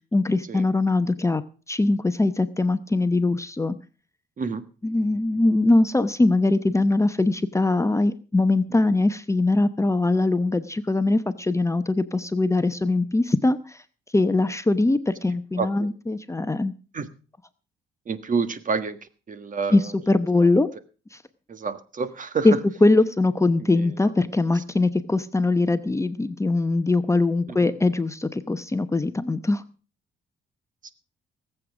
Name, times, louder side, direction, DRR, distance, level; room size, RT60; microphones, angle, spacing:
voice 1, 0.1-1.4 1.7-3.8 4.8-13.8 14.1-16.7 19.7-20.7 21.1-21.2 22.4-22.5 22.8-29.6, left 2 dB, 15° left, 11 dB, 0.9 m, -22 dB
voice 2, 15.6-15.9 16.9-17.1 18.1-19.9 20.3-20.5 21.5-22.6 23.6-24.1 24.5-24.6 27.5-27.7 30.8-30.9, right 5 dB, 40° right, 12 dB, 1.6 m, -29 dB
18.5 x 7.9 x 6.1 m, 0.37 s
cardioid pair, 90°, 20 cm